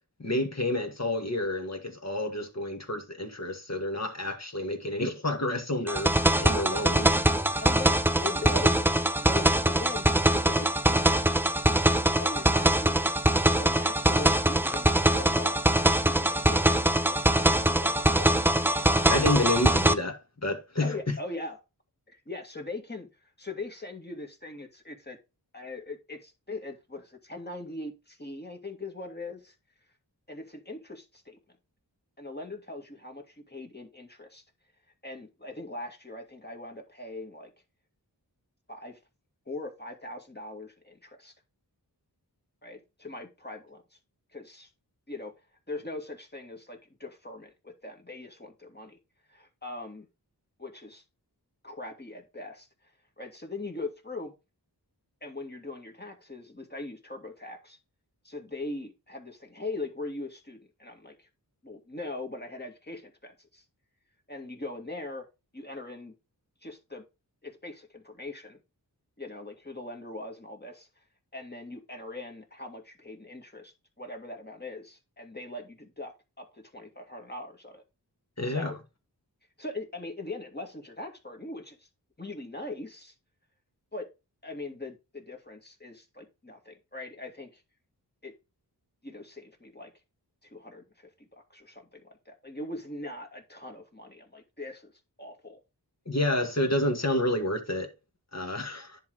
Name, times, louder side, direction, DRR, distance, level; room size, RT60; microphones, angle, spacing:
voice 1, 0.2-6.1 6.4-7.1 19.1-21.2 78.4-78.8 96.1-97.9 98.3-99.0, left 1 dB, 40° left, 2.1 m, -29 dB
sound 1, 5.9-19.9, right 1 dB, 5° right, 0.6 m, -23 dB
voice 2, 7.6-8.9 9.2-11.3 12.2-13.1 13.6-18.5 20.8-21.6 22.1-25.2 25.5-29.6 30.3-31.6 32.2-34.4 35.0-37.5 38.7-39.0 39.5-41.3 42.6-43.8 44.3-44.7 45.1-45.3 45.7-49.0 49.3-50.1 50.6-51.0 51.6-52.7 53.2-54.3 55.2-57.8 58.2-61.3 61.6-63.6 64.3-65.3 65.5-66.1 66.6-67.0 67.4-68.6 69.2-70.9 71.3-77.8 78.4-78.8 79.6-81.9 82.2-83.1 83.9-84.1 84.4-87.6 88.2-88.3 89.0-89.9 90.4-94.9 95.2-95.6, left 2 dB, 25° left, 2.1 m, -41 dB
10.5 x 3.9 x 4.8 m
wide cardioid pair, 65°, 40 cm